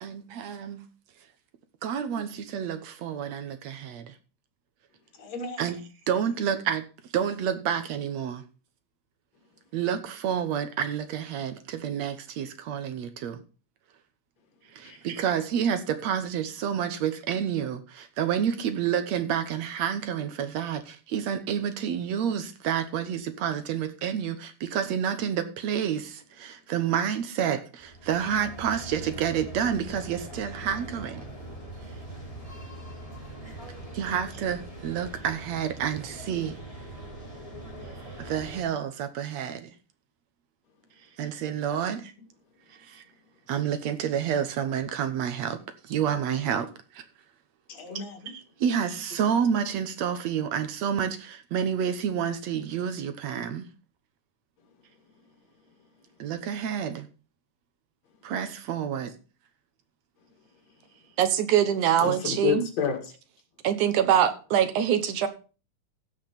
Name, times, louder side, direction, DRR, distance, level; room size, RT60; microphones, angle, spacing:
voice 1, 0.0-0.8 1.8-4.1 5.6-6.9 7.1-8.4 9.7-13.4 14.7-31.3 33.9-36.6 38.2-39.7 41.2-42.1 42.9-43.0 43.5-47.0 48.3-53.7 56.2-57.1 58.2-59.1, right 8 dB, 70° right, 2.2 m, -29 dB
voice 2, 5.2-5.7 14.8-15.0 47.7-48.3 62.0-63.0, left 7 dB, 60° left, 3.2 m, -30 dB
sound 1, 27.8-38.6, right 1 dB, 10° left, 4.1 m, -42 dB
voice 3, 61.2-62.7 63.6-65.3, right 10 dB, 90° right, 2.7 m, -23 dB
15.5 x 5.8 x 5.9 m
omnidirectional pair, 3.4 m